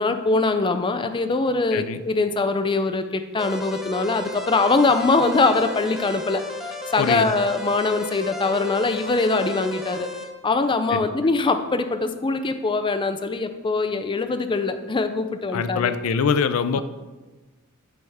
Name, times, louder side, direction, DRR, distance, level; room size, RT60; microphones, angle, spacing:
voice 1, 0.0-10.1 10.4-15.9, left 3 dB, 25° left, 8 dB, 0.4 m, -22 dB
sound 1, 3.4-10.2, left 2 dB, ahead, 0.8 m, -34 dB
voice 2, 15.5-16.8, left 6 dB, 85° left, 12 dB, 0.4 m, -23 dB
9.5 x 5.6 x 3.5 m, 1.2 s
head